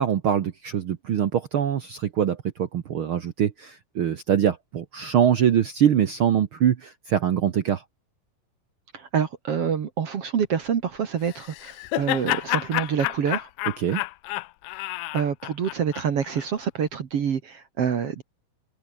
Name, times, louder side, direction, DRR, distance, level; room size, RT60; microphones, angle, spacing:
voice 1, 0.0-7.8 13.8-14.0, right 9 dB, 80° right, 1.1 m, -23 dB
voice 2, 8.9-13.5 15.1-18.2, right 7 dB, 50° right, 2.2 m, -26 dB
Laughter, 11.3-16.5, left 20 dB, 80° left, 1.8 m, -30 dB
open air
omnidirectional pair, 4.1 m